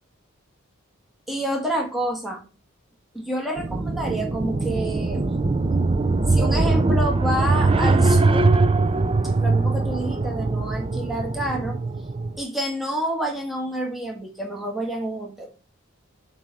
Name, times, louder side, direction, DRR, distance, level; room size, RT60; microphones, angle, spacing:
voice 1, 1.3-2.5 3.1-5.3 6.3-8.5 9.4-11.8 12.4-15.5, right 1 dB, ahead, -1 dB, 1.4 m, -28 dB
sound 1, 3.6-12.4, right 3 dB, 25° right, 0.4 m, -21 dB
7.3 x 3.4 x 5.2 m, 0.32 s
head